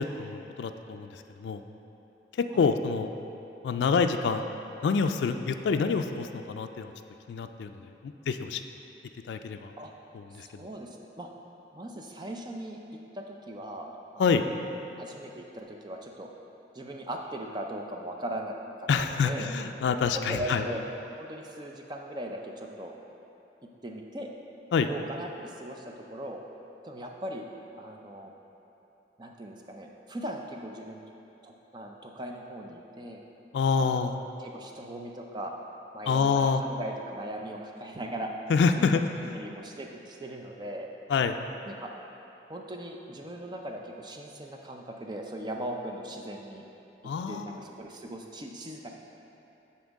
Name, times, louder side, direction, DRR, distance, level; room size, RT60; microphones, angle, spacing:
voice 1, 0.0-1.6 2.4-3.1 3.6-4.4 4.8-6.9 7.3-8.6 9.3-9.7 10.1-10.6 14.2-14.5 18.9-20.7 24.7-24.9 33.5-34.2 36.1-36.6 38.5-39.0 41.1-41.4 47.0-47.6, left 5 dB, 75° left, 7 dB, 0.3 m, -27 dB
voice 2, 10.3-11.3 11.7-12.8 13.1-14.3 15.0-16.3 16.7-19.5 20.1-20.8 21.2-23.0 23.6-24.3 24.9-26.4 26.8-27.5 27.8-28.3 29.2-31.0 31.4-33.2 33.7-35.5 35.9-38.3 38.8-39.0 39.3-40.9 41.6-41.9 42.5-46.6 47.3-48.9, right 1 dB, 25° right, 1 dB, 0.5 m, -39 dB
10.0 x 4.3 x 3.5 m, 3.0 s
head